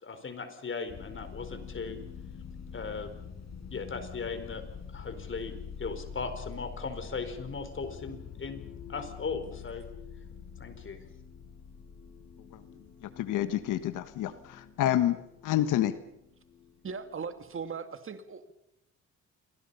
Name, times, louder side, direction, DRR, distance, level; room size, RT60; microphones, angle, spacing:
voice 1, 0.0-2.0 2.7-3.1 3.7-4.6 4.9-8.6 8.9-9.8 10.6-11.0, left 4 dB, 40° left, 9 dB, 4.5 m, -38 dB
sound 1, 0.9-17.7, left 6 dB, 60° left, 6.2 m, -46 dB
voice 2, 13.0-15.2 15.4-16.0, left 12 dB, 90° left, 12 dB, 1.4 m, -28 dB
voice 3, 16.8-18.5, right 5 dB, 45° right, 9 dB, 2.2 m, -38 dB
28.5 x 24.0 x 5.7 m, 0.82 s
cardioid pair, 90°, 30 cm